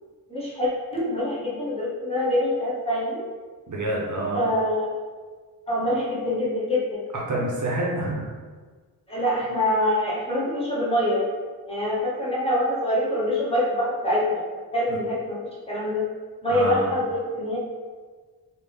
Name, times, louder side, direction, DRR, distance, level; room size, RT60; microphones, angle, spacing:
voice 1, 0.3-3.2 4.3-4.9 5.7-7.1 9.1-11.2 11.7-14.4 14.7-15.4 15.7-16.0 16.4-17.6, left 1 dB, 15° left, -7 dB, 0.9 m, -25 dB
voice 2, 3.7-4.4 7.3-8.3 14.9-15.0 16.5-17.0, right 1 dB, 50° right, -3 dB, 0.7 m, -27 dB
3.3 x 2.5 x 3.4 m, 1.5 s
wide cardioid pair, 160°, 38 cm